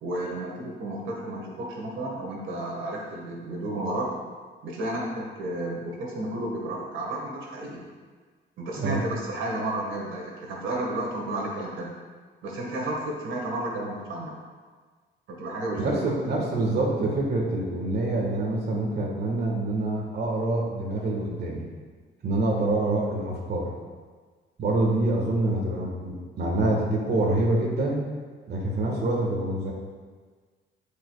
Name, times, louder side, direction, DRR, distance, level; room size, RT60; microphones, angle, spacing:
voice 1, 0.0-4.1 4.6-7.8 8.6-12.0 12.4-14.4 15.3-16.0, right 1 dB, 80° right, -2 dB, 1.7 m, -32 dB
voice 2, 15.8-21.7 22.2-23.7 24.6-28.0 28.5-29.7, right 2 dB, 55° right, -2 dB, 1.7 m, -26 dB
12.5 x 5.3 x 2.4 m, 1.5 s
cardioid pair, 90°, 20 cm